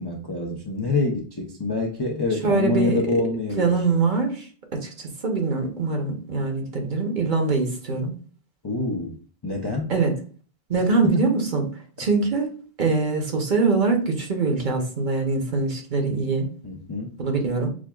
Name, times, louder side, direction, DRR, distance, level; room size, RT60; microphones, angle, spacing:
voice 1, 0.0-3.8 8.6-9.9 10.8-11.3 16.6-17.1, left 3 dB, 35° left, -1 dB, 0.4 m, -26 dB
voice 2, 2.4-3.1 3.6-8.1 9.9-10.1 10.7-11.7 12.0-16.5 17.2-17.7, right 4 dB, 50° right, 2 dB, 0.9 m, -23 dB
6.1 x 2.3 x 2.2 m, 0.42 s
omnidirectional pair, 1.1 m